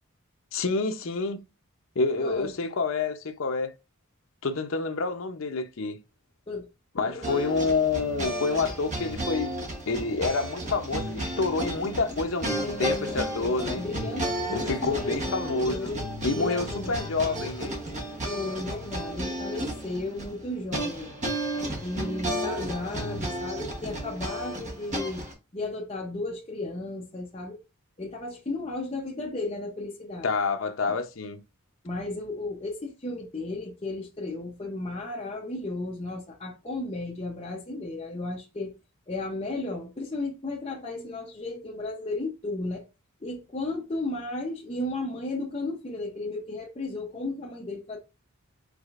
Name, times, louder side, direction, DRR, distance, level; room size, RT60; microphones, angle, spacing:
voice 1, 0.5-1.4 2.0-3.7 4.4-6.0 7.0-9.5 9.9-13.8 14.5-15.9 16.2-17.7 30.2-31.4, left 3 dB, 65° left, 0.6 m, -28 dB
voice 2, 2.2-2.5 6.5-6.7 7.0-7.4 12.5-16.1 16.3-17.0 18.3-21.1 21.8-25.2 25.5-27.6 28.0-30.3 31.8-38.7 39.1-42.9 43.2-48.0, left 2 dB, 30° left, 0.7 m, -34 dB
sound 1, 7.2-25.3, right 1 dB, 35° right, 1.1 m, -33 dB
4.8 x 4.3 x 2.4 m
head